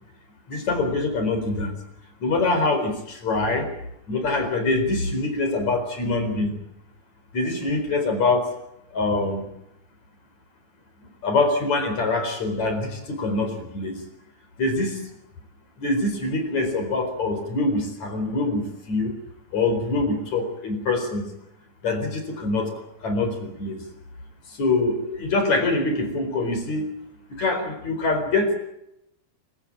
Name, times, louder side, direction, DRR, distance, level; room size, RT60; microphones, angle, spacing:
voice 1, 0.5-1.7 2.2-3.7 4.1-6.6 7.3-8.5 8.9-9.5 11.2-14.0 14.6-15.0 15.8-19.1 19.5-21.2 21.8-22.7 23.0-23.8 24.6-26.9 27.4-28.6, left 3 dB, 45° left, 6 dB, 5.5 m, -24 dB
26.5 x 17.0 x 8.7 m, 0.82 s
omnidirectional pair, 4.5 m